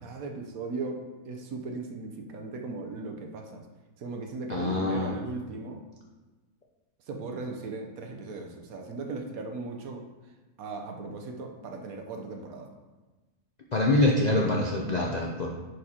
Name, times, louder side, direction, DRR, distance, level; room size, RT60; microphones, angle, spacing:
voice 1, 0.0-3.7 4.0-5.8 7.1-10.0 10.6-12.7, right 3 dB, 65° right, 3 dB, 1.1 m, -37 dB
voice 2, 4.5-5.1 13.7-15.5, left 2 dB, 55° left, -1 dB, 0.4 m, -25 dB
10.5 x 4.7 x 2.9 m, 1.2 s
omnidirectional pair, 1.7 m